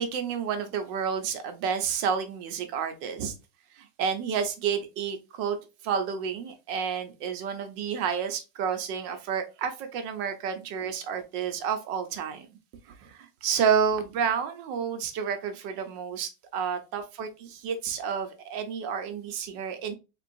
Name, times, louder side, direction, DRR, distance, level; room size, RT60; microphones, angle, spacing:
voice 1, 0.0-3.3 3.7-5.6 5.8-12.5 12.8-19.9, right 7 dB, 85° right, 7 dB, 1.4 m, -30 dB
3.8 x 3.8 x 2.5 m, 0.28 s
omnidirectional pair, 1.9 m